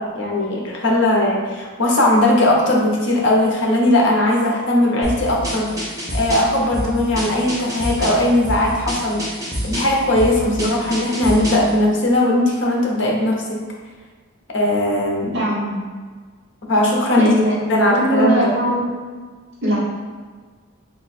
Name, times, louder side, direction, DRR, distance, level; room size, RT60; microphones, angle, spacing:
voice 1, 0.0-9.2 9.6-13.6 14.5-15.3 16.7-17.3 17.7-18.5, left 1 dB, 55° left, -2 dB, 0.8 m, -18 dB
sound 1, 5.0-11.7, equal, 15° right, 0.8 m, -27 dB
voice 2, 15.3-15.7 17.2-18.8 19.6-19.7, equal, 55° right, -14 dB, 1.3 m, -20 dB
3.0 x 2.7 x 4.2 m, 1.5 s
head